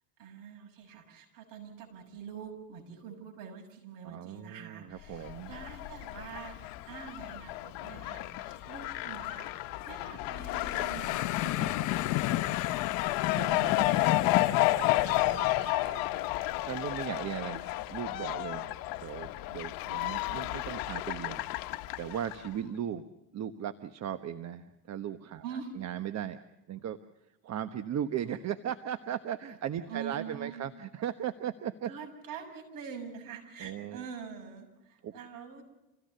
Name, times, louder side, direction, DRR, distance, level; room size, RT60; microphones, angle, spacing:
voice 1, 0.2-16.1 25.4-25.8 29.9-30.7 31.8-35.6, right 7 dB, 65° right, 3 dB, 7.1 m, -46 dB
voice 2, 4.0-5.5 13.3-13.9 16.6-21.4 22.0-23.1 23.3-25.4 25.8-26.4 26.7-27.0 27.4-31.9 33.6-34.0 35.0-35.1, right 10 dB, 45° right, 10 dB, 1.2 m, -37 dB
Fowl, 5.1-22.5, left 16 dB, 70° left, 1.2 m, -32 dB
sound 1, 10.5-15.5, left 16 dB, 55° left, 0.7 m, -32 dB
27.0 x 17.0 x 6.7 m, 0.97 s
supercardioid pair, 95°, 36 cm